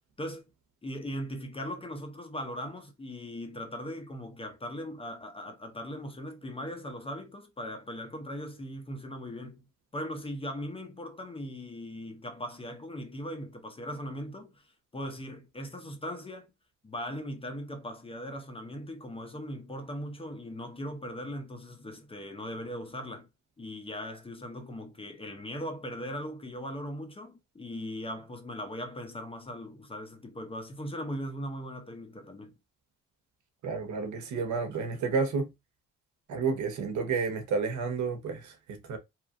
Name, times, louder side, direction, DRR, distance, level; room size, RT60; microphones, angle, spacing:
voice 1, 0.8-9.7 9.9-16.5 16.8-23.3 23.6-32.5, equal, 20° left, 0.6 m, -39 dB
voice 2, 33.6-35.5 36.3-39.0, right 5 dB, 70° right, 0.9 m, -31 dB
2.8 x 2.4 x 2.4 m
cardioid pair, 90°, 30 cm